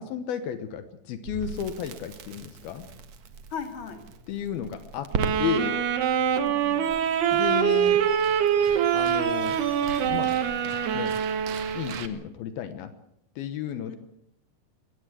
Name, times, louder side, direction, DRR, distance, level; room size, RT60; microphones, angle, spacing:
voice 1, 0.0-2.9 4.3-5.1 5.4-5.9 7.3-8.0 8.9-9.6 10.1-10.4 10.9-11.1 11.7-12.9 13.4-14.0, left 8 dB, 75° left, 10 dB, 3.0 m, -33 dB
Crackle, 1.3-12.1, right 5 dB, 55° right, 2.3 m, -39 dB
voice 2, 3.5-4.0 6.4-6.8 13.9-14.0, left 6 dB, 35° left, 6 dB, 3.4 m, -37 dB
Wind instrument woodwind instrument, 5.1-12.1, right 8 dB, 90° right, 3.8 m, -24 dB
Squeak, 6.7-11.4, left 3 dB, 60° left, 6.1 m, -48 dB
22.0 x 18.5 x 8.4 m, 0.77 s
omnidirectional pair, 4.4 m